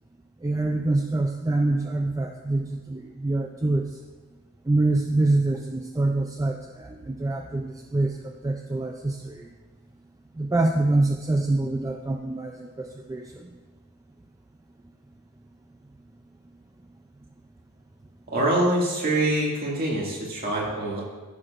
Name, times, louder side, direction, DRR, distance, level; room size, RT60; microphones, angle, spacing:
voice 1, 0.4-4.0 4.7-9.5 10.4-13.5, right 2 dB, 15° right, 3 dB, 0.4 m, -25 dB
voice 2, 18.3-21.0, right 1 dB, 40° right, -4 dB, 2.2 m, -24 dB
14.5 x 6.4 x 2.5 m, 1.3 s
head